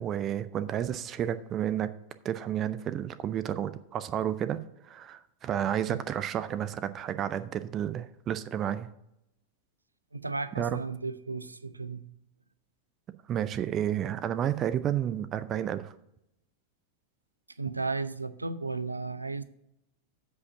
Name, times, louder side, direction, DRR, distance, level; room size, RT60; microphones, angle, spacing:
voice 1, 0.0-1.9 2.2-4.6 4.9-8.9 10.6-10.8 13.3-15.9, right 10 dB, 30° right, 13 dB, 0.5 m, -31 dB
voice 2, 10.1-12.0 17.6-19.4, right 3 dB, 80° right, 15 dB, 0.5 m, -34 dB
8.3 x 5.1 x 7.4 m, 0.81 s
figure-of-eight pair, 90°, 0 cm